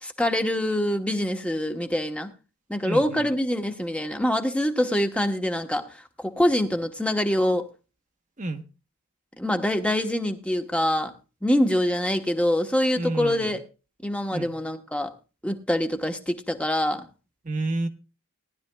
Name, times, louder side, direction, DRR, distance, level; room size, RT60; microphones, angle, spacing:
voice 1, 0.0-2.3 2.7-7.6 9.4-11.1 11.4-13.6 14.0-15.1 15.4-17.1, left 1 dB, 5° left, 5 dB, 1.0 m, -25 dB
voice 2, 2.8-3.2 8.4-8.6 13.0-13.5 14.3-14.5 17.4-17.9, right 2 dB, 35° right, 7 dB, 1.0 m, -30 dB
19.0 x 11.0 x 2.2 m, 0.32 s
head